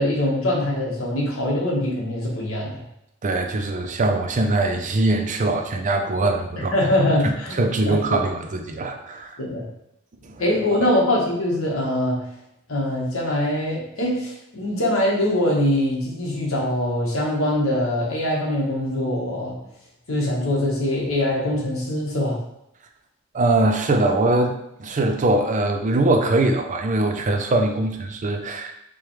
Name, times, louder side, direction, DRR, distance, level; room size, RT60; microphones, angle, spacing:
voice 1, 0.0-2.8 6.6-7.6 7.8-8.0 9.4-9.6 10.4-12.2 12.7-19.6 20.1-22.4, left 1 dB, 70° left, -3 dB, 1.2 m, -23 dB
voice 2, 3.2-6.7 7.2-9.4 10.2-10.4 23.3-28.7, right 2 dB, 35° right, 4 dB, 0.4 m, -22 dB
4.7 x 2.3 x 3.1 m, 0.80 s
head